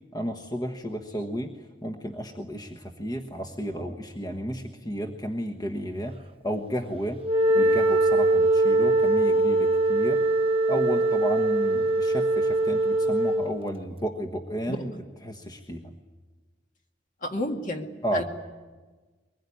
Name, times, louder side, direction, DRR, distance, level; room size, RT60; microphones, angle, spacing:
voice 1, 0.1-6.2 6.4-7.2 7.5-10.2 10.7-14.9 15.2-15.9 18.0-18.2, equal, 20° left, 4 dB, 1.3 m, -32 dB
Wind instrument woodwind instrument, 7.2-13.5, right 2 dB, 30° right, 0.9 m, -22 dB
voice 2, 17.2-18.2, left 1 dB, 45° left, 3 dB, 2.2 m, -31 dB
23.5 x 20.5 x 9.9 m, 1.3 s
head